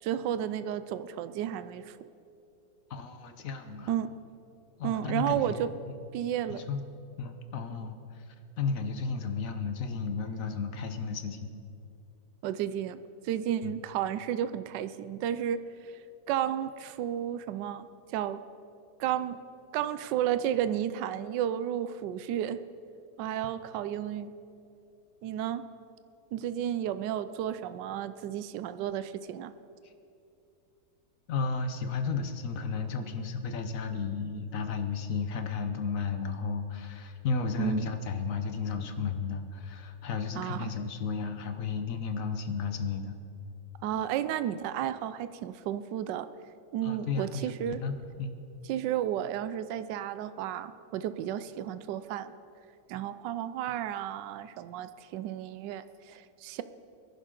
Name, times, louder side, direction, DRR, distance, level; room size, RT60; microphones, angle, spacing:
voice 1, 0.0-2.0 3.9-4.1 4.8-5.7 6.1-6.6 7.7-7.9 12.4-13.0 13.2-15.6 16.3-17.9 18.1-18.4 19.0-19.4 19.7-22.6 23.2-24.3 25.2-25.6 26.3-29.5 37.6-37.9 40.4-40.7 43.8-46.3 46.7-47.8 48.7-52.3 52.9-56.6, right 10 dB, 80° right, 12 dB, 1.2 m, -32 dB
voice 2, 2.9-3.9 4.8-5.7 6.5-6.8 7.2-11.5 13.6-13.8 23.6-23.7 29.8-29.9 31.3-43.2 46.8-48.4, left 5 dB, 55° left, 7 dB, 1.2 m, -33 dB
23.0 x 11.0 x 3.8 m, 2.6 s
omnidirectional pair, 1.9 m